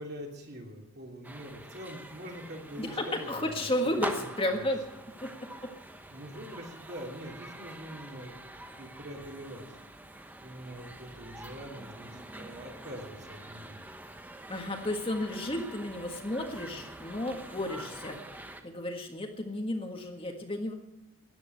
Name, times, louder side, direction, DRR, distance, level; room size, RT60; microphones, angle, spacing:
voice 1, 0.0-4.7 6.1-8.3 8.6-9.7 10.4-13.8, equal, 50° right, 1 dB, 2.9 m, -44 dB
sound 1, 1.2-18.6, right 1 dB, 10° right, 0.9 m, -45 dB
voice 2, 2.8-4.8 5.2-5.3 5.6-5.7 14.5-18.2 18.6-20.7, left 1 dB, 25° left, 3 dB, 1.6 m, -33 dB
14.0 x 9.9 x 8.3 m, 0.85 s
head